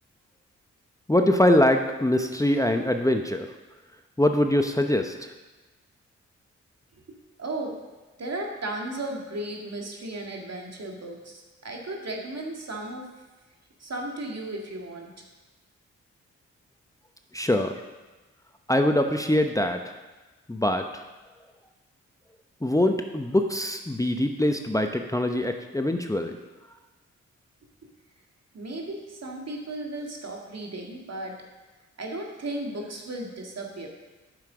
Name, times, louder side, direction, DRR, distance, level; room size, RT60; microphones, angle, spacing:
voice 1, 1.1-3.5 4.2-5.3 17.3-17.7 18.7-19.9 20.5-21.0 22.6-26.4, left 1 dB, 10° left, 5 dB, 0.8 m, -23 dB
voice 2, 7.1-7.8 8.2-13.1 13.8-15.1 28.5-31.4 32.0-33.9, right 2 dB, 55° right, 0 dB, 2.0 m, -35 dB
9.2 x 6.7 x 5.1 m, 1.2 s
supercardioid pair, 40°, 31 cm